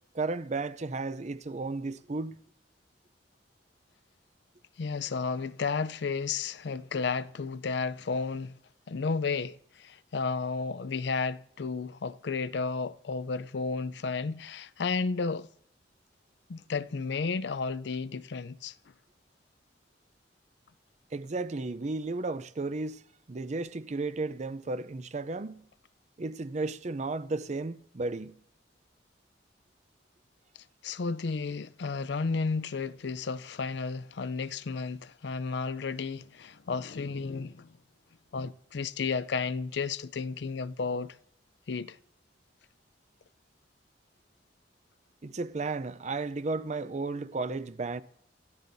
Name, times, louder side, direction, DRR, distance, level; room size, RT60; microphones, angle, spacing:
voice 1, 0.1-2.4 21.1-25.6 26.2-28.4 45.2-48.0, right 3 dB, 40° right, 0.5 m, -34 dB
voice 2, 4.8-8.5 8.9-15.5 16.5-18.7 30.8-37.7 38.3-41.1 41.7-42.0, left 4 dB, 65° left, 0.5 m, -32 dB
27.5 x 14.0 x 2.7 m
head